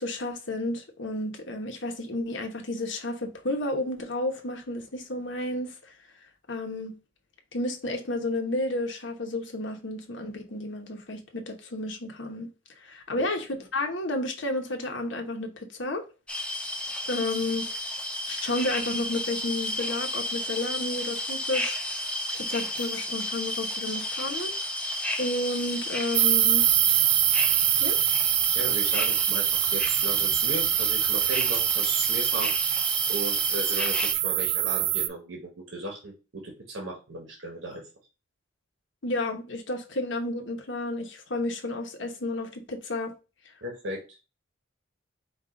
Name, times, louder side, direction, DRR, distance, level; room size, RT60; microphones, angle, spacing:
voice 1, 0.0-5.7 6.5-6.9 7.5-12.5 12.8-16.0 17.1-17.7 18.3-21.9 22.3-24.7 25.2-26.6 27.8-28.0 39.0-43.1, left 2 dB, 80° left, 1.0 m, -31 dB
sound 1, 16.3-34.1, left 1 dB, 5° left, 0.6 m, -32 dB
sound 2, 26.1-35.1, right 14 dB, 65° right, 0.3 m, -24 dB
voice 2, 28.5-32.5 33.1-37.9 43.6-44.2, right 1 dB, 85° right, 1.2 m, -36 dB
5.3 x 2.5 x 3.8 m
head